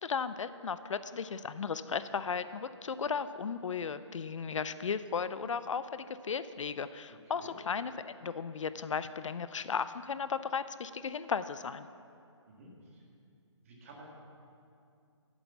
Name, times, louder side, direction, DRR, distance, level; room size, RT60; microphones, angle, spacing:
voice 1, 0.0-11.9, left 6 dB, 80° left, 13 dB, 0.5 m, -35 dB
voice 2, 7.1-7.6 12.5-13.0 13.6-14.0, right 2 dB, 25° right, -2 dB, 1.6 m, -53 dB
8.1 x 7.9 x 7.1 m, 2.5 s
hypercardioid pair, 170°, 16 cm